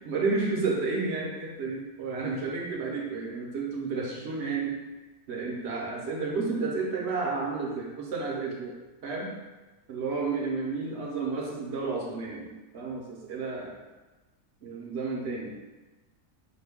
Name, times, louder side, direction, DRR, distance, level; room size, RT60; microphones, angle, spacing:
voice 1, 0.0-4.8 5.3-8.7 9.0-9.3 9.9-13.7 14.6-15.5, right 4 dB, 60° right, -2 dB, 0.8 m, -31 dB
5.2 x 2.2 x 3.4 m, 1.2 s
omnidirectional pair, 1.5 m